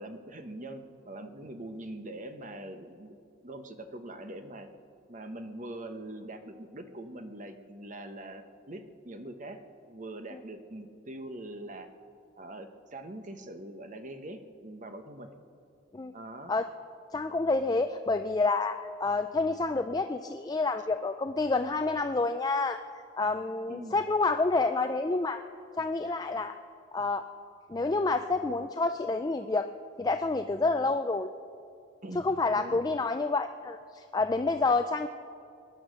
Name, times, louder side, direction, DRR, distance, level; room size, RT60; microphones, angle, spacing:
voice 1, 0.0-3.2 3.4-4.7 5.1-9.6 9.9-11.9 12.4-15.3 16.1-16.5 23.7-24.0 32.0-32.3 32.5-32.8, right 1 dB, 40° right, 7 dB, 1.0 m, -43 dB
voice 2, 17.1-22.8 23.1-25.4 25.8-26.5 26.9-27.2 27.7-29.7 30.0-31.3 32.2-35.1, left 3 dB, 20° left, 8 dB, 0.3 m, -28 dB
21.5 x 10.5 x 6.4 m, 2.5 s
head